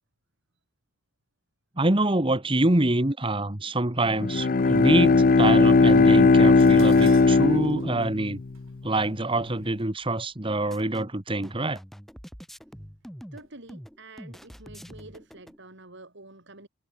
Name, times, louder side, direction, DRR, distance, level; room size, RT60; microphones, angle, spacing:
voice 1, 1.8-8.4 8.8-11.8, right 2 dB, 25° right, 1.5 m, -25 dB
Bowed string instrument, 4.1-8.5, left 3 dB, 40° left, 0.5 m, -18 dB
Dishes pots and pans, 6.6-11.0 11.8-12.2 12.6-13.5 13.7-13.8, right 6 dB, 70° right, 2.9 m, -48 dB
sound 1, 10.7-15.6, equal, ahead, 2.2 m, -45 dB
voice 2, 13.3-16.7, right 2 dB, 55° right, 4.0 m, -48 dB
head